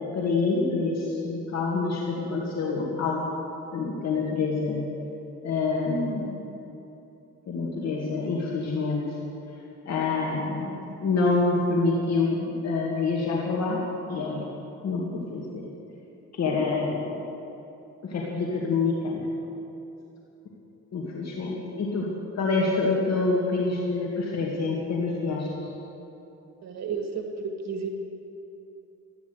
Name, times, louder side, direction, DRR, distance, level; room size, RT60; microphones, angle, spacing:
voice 1, 0.1-3.3 3.7-4.8 5.4-6.4 7.5-9.0 9.9-13.8 14.1-14.5 14.8-15.6 16.3-17.2 18.0-19.3 20.9-22.1 22.4-25.7, left 3 dB, 60° left, -4 dB, 2.3 m, -27 dB
voice 2, 26.6-27.9, right 5 dB, 60° right, 2 dB, 1.8 m, -32 dB
13.5 x 10.5 x 8.1 m, 2.9 s
cardioid pair, 90°, 30 cm